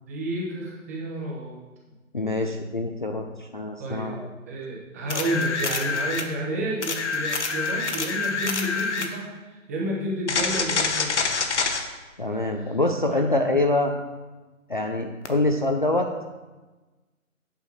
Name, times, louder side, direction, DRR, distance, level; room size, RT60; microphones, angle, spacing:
voice 1, 0.1-1.6 3.8-4.2 4.5-11.4 12.6-12.7 13.1-13.3, right 1 dB, 10° right, -4 dB, 0.8 m, -31 dB
voice 2, 2.1-4.3 12.2-13.9 14.7-16.1, left 2 dB, 40° left, 3 dB, 0.4 m, -25 dB
sound 1, 5.1-6.3 6.8-9.1 10.3-11.8 15.3-15.4, left 4 dB, 55° left, 1.1 m, -26 dB
8.5 x 6.0 x 4.4 m, 1.2 s
figure-of-eight pair, 155°, 42 cm